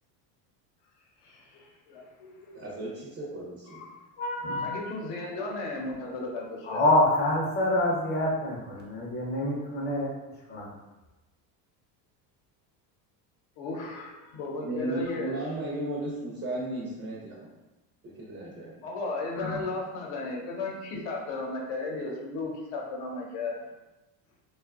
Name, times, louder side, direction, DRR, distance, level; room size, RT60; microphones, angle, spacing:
voice 1, 1.2-2.7 3.7-3.9 4.2-6.9 13.6-15.4 18.8-23.6, left 3 dB, 65° left, -1 dB, 0.8 m, -35 dB
voice 2, 2.5-3.8 14.6-17.5 18.0-18.9, right 1 dB, 30° right, -5 dB, 0.5 m, -35 dB
voice 3, 6.7-10.1 10.5-10.7 19.4-19.5, left 1 dB, 20° left, -3 dB, 0.6 m, -26 dB
2.5 x 2.3 x 2.4 m, 1.1 s
supercardioid pair, 110°, 49 cm